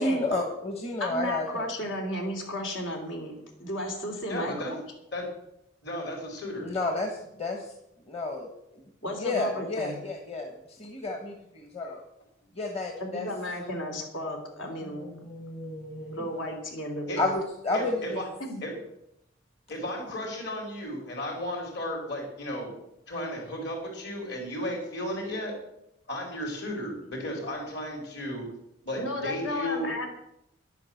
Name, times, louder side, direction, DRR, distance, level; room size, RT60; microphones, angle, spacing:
voice 1, 0.0-1.6 6.6-7.7 8.1-8.5 8.7-8.8 9.2-12.0 12.5-13.3 14.8-16.3 17.2-18.2, left 2 dB, 30° left, 3 dB, 1.4 m, -31 dB
voice 2, 1.0-4.8 9.0-10.0 13.0-15.1 16.1-17.3 18.4-18.6 29.0-30.1, left 1 dB, 70° left, 1 dB, 3.2 m, -34 dB
voice 3, 4.3-4.7 5.1-5.2 5.8-6.7 17.1-17.2 17.7-18.3 18.6-18.7 19.7-22.7 23.1-25.6 26.1-28.5 28.8-30.1, left 1 dB, 55° left, 1 dB, 4.8 m, -34 dB
11.0 x 9.9 x 7.8 m, 0.81 s
head